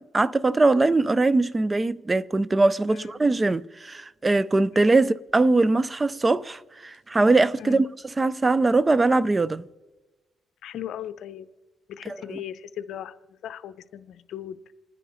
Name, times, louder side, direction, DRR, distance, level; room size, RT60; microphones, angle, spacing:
voice 1, 0.1-7.9 8.2-9.7 12.1-12.4, right 3 dB, 25° right, 0.5 m, -21 dB
voice 2, 2.9-3.2 4.7-5.0 7.5-7.8 10.6-11.5 11.9-14.6, left 10 dB, 75° left, 0.7 m, -38 dB
28.0 x 10.0 x 4.1 m
cardioid pair, 90°, 0 cm